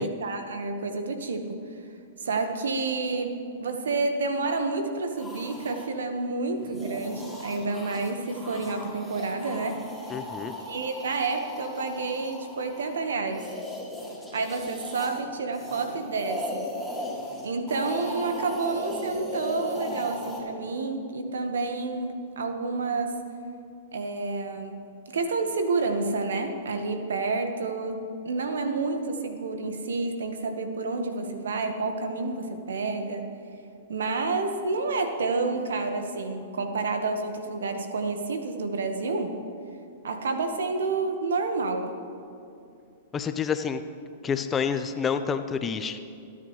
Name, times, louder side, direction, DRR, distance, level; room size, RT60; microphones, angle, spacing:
voice 1, 0.0-1.6 2.2-9.9 10.7-13.5 14.3-16.7 17.4-23.2 23.9-24.8 25.1-33.3 33.9-39.3 40.0-41.9, right 3 dB, 75° right, 6 dB, 1.4 m, -29 dB
sound 1, 5.2-5.9 6.5-15.2 15.5-20.4, left 1 dB, 5° right, 3.5 m, -37 dB
voice 2, 10.1-10.5 43.1-43.8 44.2-46.0, left 6 dB, 20° left, 9 dB, 0.7 m, -28 dB
23.5 x 9.8 x 3.2 m, 2.5 s
hypercardioid pair, 110°, 0 cm